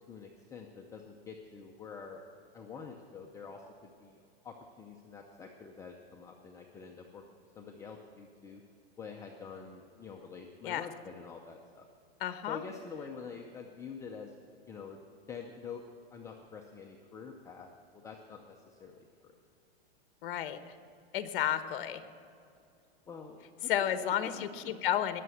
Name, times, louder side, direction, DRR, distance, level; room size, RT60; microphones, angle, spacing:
voice 1, 0.1-2.2 2.5-7.2 7.6-8.6 9.0-11.9 12.5-14.3 14.7-15.0 15.3-15.8 16.1-19.3 23.1-24.1 24.4-24.7, left 5 dB, 10° left, 1 dB, 0.6 m, -47 dB
voice 2, 12.2-12.6 20.2-20.6 21.1-22.0 23.7-25.2, left 11 dB, 60° left, 10 dB, 1.1 m, -32 dB
19.5 x 6.9 x 7.8 m, 2.4 s
supercardioid pair, 150°, 30 cm